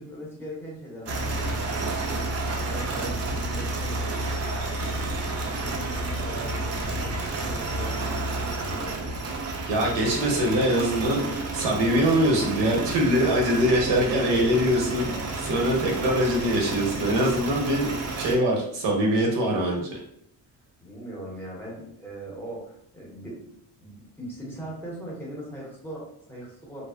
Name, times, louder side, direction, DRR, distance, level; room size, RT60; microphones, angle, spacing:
voice 1, 0.0-4.1 4.4-4.9 5.6-9.1 15.4-16.2 20.8-23.4 23.8-26.8, right 1 dB, 5° left, -4 dB, 0.7 m, -40 dB
sound 1, 1.0-18.4, right 2 dB, 40° right, 0.5 m, -31 dB
voice 2, 9.7-11.3 11.5-17.9 18.1-20.0, equal, 85° right, 0 dB, 0.9 m, -23 dB
2.6 x 2.0 x 2.4 m, 0.71 s
cardioid pair, 160°, 41 cm